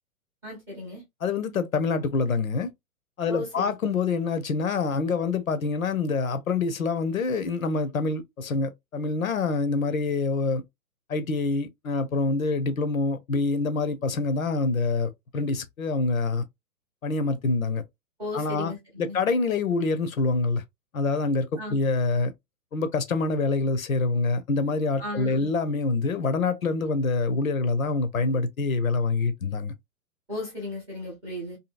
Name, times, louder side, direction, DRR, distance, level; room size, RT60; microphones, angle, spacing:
voice 1, 0.4-1.0 3.3-4.0 18.2-19.2 21.6-21.8 25.0-25.5 30.3-31.6, left 2 dB, 5° right, 0.6 m, -35 dB
voice 2, 1.2-2.7 3.2-10.6 11.1-16.4 17.0-17.8 18.3-18.7 19.0-20.6 20.9-22.3 22.7-29.7, left 3 dB, 65° left, 0.6 m, -26 dB
2.7 x 2.6 x 2.4 m
figure-of-eight pair, 125°, 45 cm